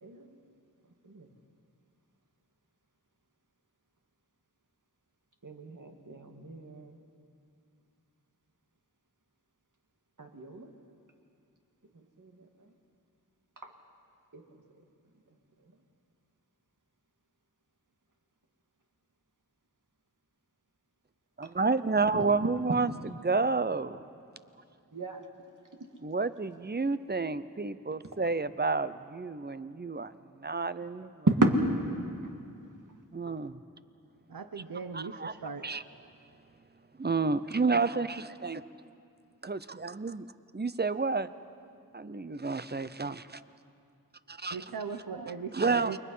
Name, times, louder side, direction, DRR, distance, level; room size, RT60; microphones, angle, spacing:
voice 1, 5.4-7.0 10.2-10.7 12.2-12.5 13.6-13.7 14.3-14.4 22.1-22.2 24.9-25.2 31.3-31.5, right 2 dB, 60° right, 3 dB, 2.1 m, -31 dB
voice 2, 21.4-22.9 23.2-24.0 26.0-31.3 33.1-33.6 34.9-35.3 35.6-35.8 37.0-38.6 39.4-40.3 40.5-41.3 41.9-43.4 44.3-44.6 45.5-46.0, right 4 dB, 30° right, 14 dB, 0.6 m, -30 dB
voice 3, 34.3-35.8 44.5-46.0, right 5 dB, 80° right, 8 dB, 0.9 m, -39 dB
29.0 x 22.5 x 5.6 m, 2.5 s
wide cardioid pair, 65°, 35 cm